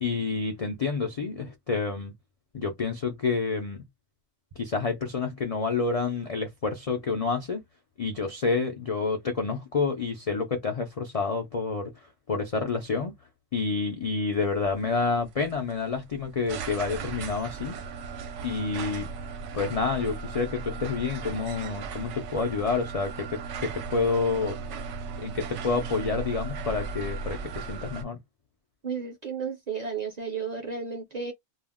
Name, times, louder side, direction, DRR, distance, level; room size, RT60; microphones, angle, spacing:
voice 1, 0.0-2.1 2.5-3.8 4.6-7.6 8.0-13.1 13.5-17.8 18.4-19.1 19.5-24.6 25.2-28.2, left 4 dB, 65° left, 0.3 m, -29 dB
sound 1, 14.4-28.0, right 4 dB, 75° right, 0.9 m, -37 dB
voice 2, 28.8-31.3, right 5 dB, 50° right, 0.5 m, -33 dB
2.4 x 2.0 x 3.4 m
omnidirectional pair, 1.3 m